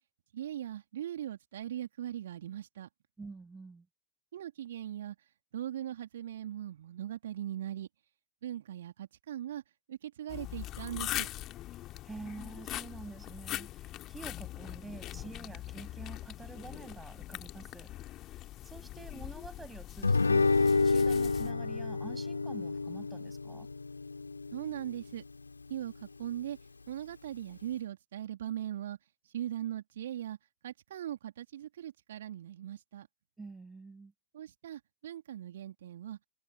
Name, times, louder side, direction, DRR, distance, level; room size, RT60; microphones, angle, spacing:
voice 1, 0.3-2.9 4.3-5.2 5.5-7.9 8.4-9.6 9.9-11.3 24.5-25.2 25.7-26.6 26.9-29.0 29.2-30.4 30.6-33.1 34.3-36.2, right 11 dB, 60° right, 2.9 m, -40 dB
voice 2, 3.2-3.9 11.7-17.9 18.3-23.7 33.4-34.1, right 3 dB, 10° right, 7.3 m, -48 dB
sound 1, 10.3-21.5, left 15 dB, 35° left, 2.7 m, -42 dB
Guitar, 20.0-25.1, left 4 dB, 80° left, 2.7 m, -29 dB
figure-of-eight pair, 90°, 0 cm